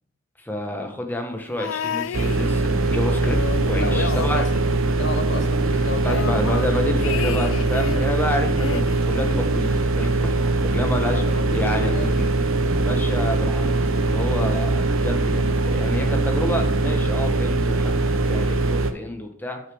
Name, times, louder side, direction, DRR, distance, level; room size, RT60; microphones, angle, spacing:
voice 1, 0.4-3.4 3.7-4.4 6.0-11.2 11.5-12.3 12.8-19.6, left 1 dB, 10° left, 3 dB, 1.1 m, -29 dB
sound 1, 1.6-2.9 3.2-5.1 5.4-5.5 5.8-8.1 8.6-9.8 10.7-10.8, left 8 dB, 75° left, 0.3 m, -33 dB
sound 2, 2.1-18.9, right 2 dB, 85° right, 0.8 m, -22 dB
voice 2, 3.8-4.5 5.0-6.3 11.0-12.2, left 3 dB, 60° left, 10 dB, 0.8 m, -31 dB
sound 3, 11.0-16.9, right 1 dB, 25° right, 0.9 m, -38 dB
6.4 x 5.7 x 6.1 m, 0.66 s
head